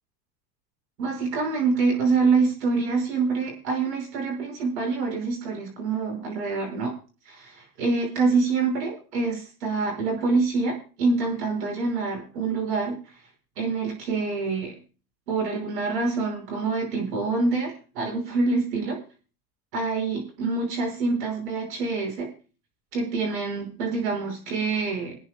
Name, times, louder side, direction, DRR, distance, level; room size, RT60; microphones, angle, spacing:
voice 1, 1.0-6.9 7.2-13.0 13.6-14.8 15.3-19.0 19.7-22.3 22.9-25.2, right 4 dB, 75° right, 2 dB, 5.9 m, -26 dB
26.5 x 9.8 x 2.3 m, 0.36 s
hypercardioid pair, 85°, 49 cm